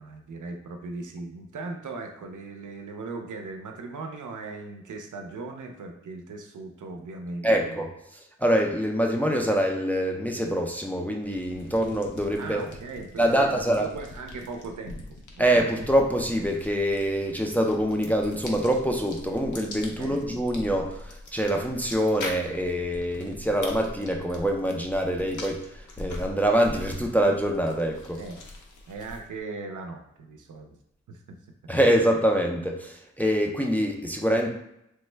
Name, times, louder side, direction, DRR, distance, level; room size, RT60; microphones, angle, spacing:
voice 1, 0.0-7.8 12.4-15.4 20.0-20.2 23.1-23.4 28.2-28.4 28.9-30.7 31.1-31.4, right 3 dB, 85° right, 4 dB, 0.5 m, -38 dB
voice 2, 7.4-7.9 8.4-12.6 13.2-13.9 15.4-25.7 26.0-28.2 31.7-34.5, equal, 5° left, 1 dB, 0.3 m, -25 dB
sound 1, 11.2-29.4, left 1 dB, 80° left, 0.6 m, -42 dB
3.3 x 2.1 x 3.2 m, 0.80 s
wide cardioid pair, 100°, 30 cm